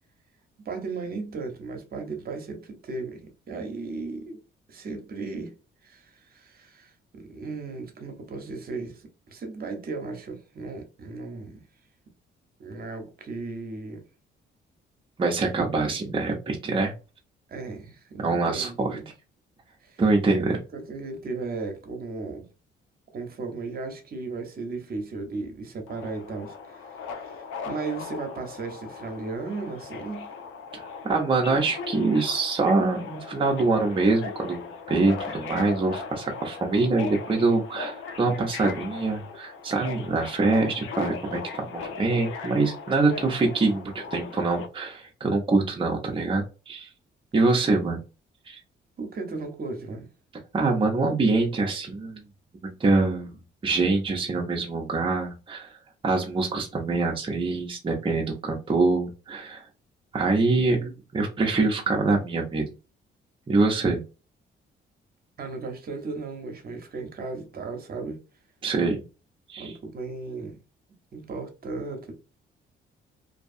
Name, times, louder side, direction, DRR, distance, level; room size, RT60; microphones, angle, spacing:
voice 1, 0.6-4.4 4.7-5.5 5.8-11.6 12.6-14.0 17.5-19.1 19.8-20.0 20.3-22.5 23.1-30.3 49.0-50.1 65.4-68.2 69.6-70.6 71.1-72.2, right 3 dB, 50° right, 0.9 m, -36 dB
voice 2, 15.2-16.9 18.2-19.0 20.0-20.6 31.0-46.9 47.3-48.0 48.5-48.6 50.5-52.2 52.6-53.4 53.6-55.7 56.0-59.6 60.1-62.7 63.5-64.0 68.6-69.0 69.5-69.7, right 3 dB, 25° right, 0.7 m, -24 dB
Subway metro underground, 25.9-44.7, left 5 dB, 90° left, 0.5 m, -38 dB
2.7 x 2.2 x 2.5 m
cardioid pair, 90°, 20 cm